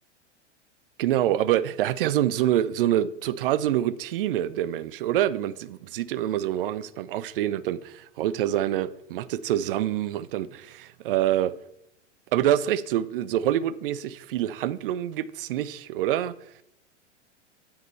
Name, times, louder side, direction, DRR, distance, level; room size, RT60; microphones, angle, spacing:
voice 1, 1.0-11.5 12.3-16.4, right 12 dB, 50° right, 0.4 m, -26 dB
8.6 x 3.3 x 4.3 m
figure-of-eight pair, 100°, 36 cm